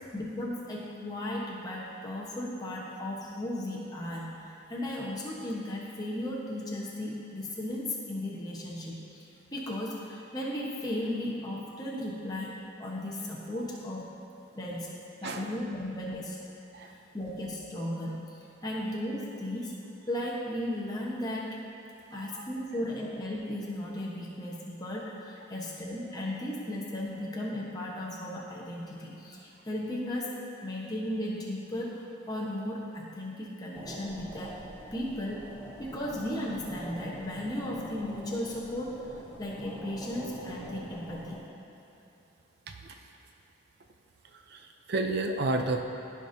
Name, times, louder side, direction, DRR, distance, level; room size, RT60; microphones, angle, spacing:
voice 1, 0.1-9.2 9.5-14.2 14.5-14.9 15.2-16.4 16.9-19.8 20.1-21.6 22.1-30.4 30.6-34.6 34.9-35.5 35.8-39.1 39.4-41.4, left 1 dB, 20° left, -4 dB, 1.0 m, -36 dB
voice 2, 22.1-22.5 25.5-25.6 42.7-43.0 44.3-45.8, right 2 dB, 50° right, 5 dB, 0.5 m, -32 dB
sound 1, 33.7-41.4, equal, 10° right, 0.8 m, -44 dB
14.0 x 5.1 x 2.7 m, 3.0 s
head